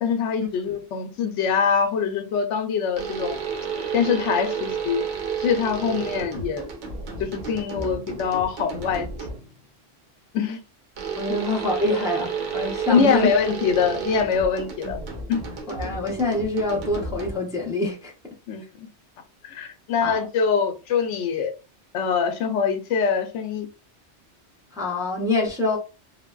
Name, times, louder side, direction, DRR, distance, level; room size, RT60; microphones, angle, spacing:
voice 1, 0.0-3.4 3.9-5.0 5.4-6.7 7.2-9.1 10.3-10.6 11.9-12.0 12.9-15.0 15.3-15.4 18.5-18.6 19.4-21.5 21.9-23.7, left 6 dB, 90° left, 0.9 m, -23 dB
sound 1, 3.0-9.6 11.0-17.6, right 6 dB, 85° right, 1.0 m, -31 dB
voice 2, 11.2-13.3 15.7-18.1 20.0-20.2 24.7-25.8, left 2 dB, 5° right, 0.5 m, -25 dB
3.2 x 2.0 x 2.3 m
omnidirectional pair, 1.2 m